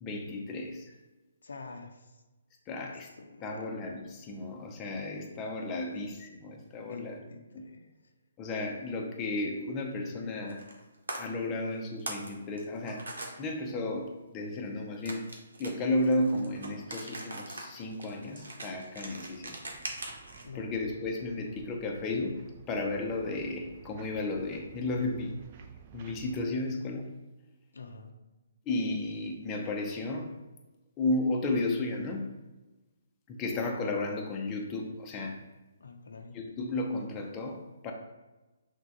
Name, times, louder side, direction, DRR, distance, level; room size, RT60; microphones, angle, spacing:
voice 1, 0.0-0.9 2.7-3.1 3.4-7.1 7.5-7.6 8.4-10.7 11.2-15.3 15.6-19.6 20.5-25.4 25.9-27.1 28.7-30.3 31.0-32.3 33.3-35.4 36.3-37.9, left 2 dB, 20° left, 1 dB, 0.5 m, -33 dB
voice 2, 1.4-2.2 2.8-3.7 6.8-8.1 20.4-20.7 27.7-28.2 35.8-36.4, left 4 dB, 85° left, 5 dB, 0.5 m, -47 dB
sound 1, 10.5-10.8 11.1-11.2 11.7-12.3 12.6-13.3 15.1-20.4, right 2 dB, 80° right, 0.8 m, -41 dB
sound 2, 18.7-26.5, right 7 dB, 35° right, 0.3 m, -53 dB
6.0 x 2.2 x 2.9 m, 1.1 s
hypercardioid pair, 155°, 0 cm